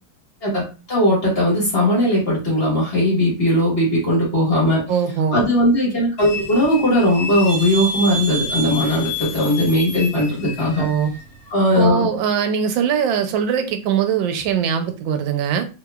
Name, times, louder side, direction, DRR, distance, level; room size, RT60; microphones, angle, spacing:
voice 1, 0.9-4.8 5.3-10.8 11.5-12.1, left 1 dB, 35° left, -5 dB, 1.6 m, -18 dB
voice 2, 4.9-5.4 10.8-11.1 11.7-15.7, right 7 dB, 85° right, 7 dB, 1.3 m, -21 dB
sound 1, 6.2-11.8, left 1 dB, 55° left, 1.3 m, -29 dB
3.3 x 2.9 x 2.2 m, 0.31 s
omnidirectional pair, 2.1 m